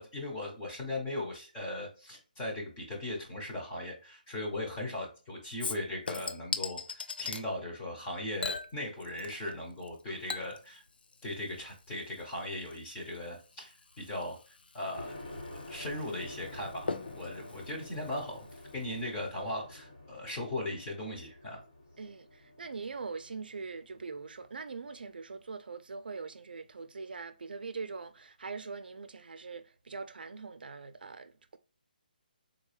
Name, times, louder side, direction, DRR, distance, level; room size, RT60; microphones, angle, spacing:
voice 1, 0.0-10.8 11.2-15.1 15.7-21.6, left 1 dB, 10° left, 0.6 m, -38 dB
Chink clink / Liquid, 5.6-7.4 8.4-9.5 9.8-18.8 19.2-19.3, left 4 dB, 85° left, 0.4 m, -41 dB
sound 1, 14.9-25.1, left 1 dB, 40° left, 1.2 m, -48 dB
voice 2, 22.0-31.6, right 4 dB, 85° right, 0.4 m, -42 dB
3.8 x 2.2 x 3.0 m
hypercardioid pair, 175°, 5 cm